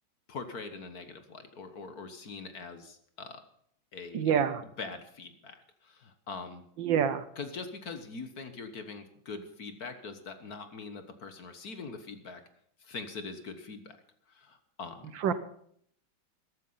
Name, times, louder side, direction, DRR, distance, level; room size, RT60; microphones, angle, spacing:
voice 1, 0.3-3.4 3.9-4.3 4.8-5.6 5.8-6.6 7.3-12.4 12.8-14.0 14.3-15.2, left 4 dB, 50° left, 8 dB, 1.7 m, -42 dB
voice 2, 4.1-4.6 6.8-7.2 15.2-15.3, right 8 dB, 65° right, 13 dB, 1.6 m, -26 dB
14.5 x 13.0 x 5.6 m, 0.65 s
omnidirectional pair, 2.3 m